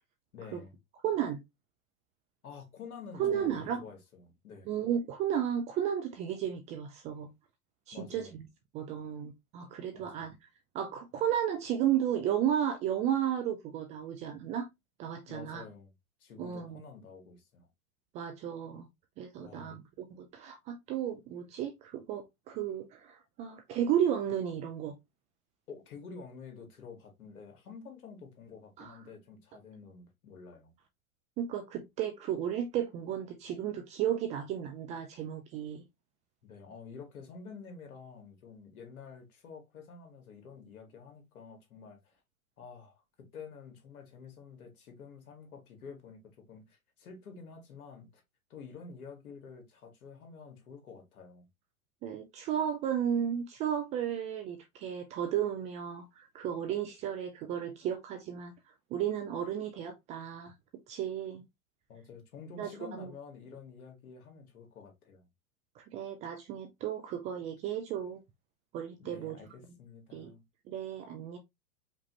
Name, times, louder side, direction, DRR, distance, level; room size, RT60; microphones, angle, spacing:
voice 1, 0.3-0.8 2.4-4.7 7.9-8.3 9.9-10.3 15.3-15.9 16.2-17.7 19.4-19.8 25.7-30.7 36.4-42.2 42.6-48.2 48.5-51.5 61.9-65.3 69.0-70.4, left 5 dB, 80° left, 2.0 m, -49 dB
voice 2, 1.0-1.4 3.2-3.8 4.7-7.3 7.9-8.5 8.7-10.4 10.7-14.7 15.0-15.6 16.4-16.8 18.1-18.9 19.2-24.9 28.8-28.9 31.4-35.8 52.0-58.5 58.9-60.5 60.9-61.4 62.6-62.7 63.0-63.1 65.8-68.2 68.7-69.4 70.1-70.3 70.7-71.4, right 9 dB, 20° right, 0.3 m, -33 dB
5.1 x 2.7 x 3.1 m
hypercardioid pair, 115°, 43 cm